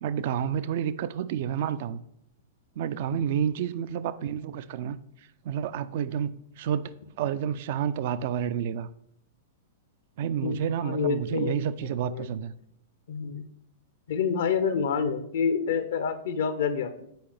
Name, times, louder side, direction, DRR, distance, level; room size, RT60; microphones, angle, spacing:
voice 1, 0.0-2.0 2.8-5.0 5.4-6.9 7.2-8.9 10.2-12.5, right 9 dB, 50° right, 0.3 m, -29 dB
voice 2, 10.4-12.3 13.1-13.4 14.1-17.0, left 6 dB, 60° left, 0.5 m, -28 dB
7.8 x 4.9 x 3.3 m
figure-of-eight pair, 100°, 0 cm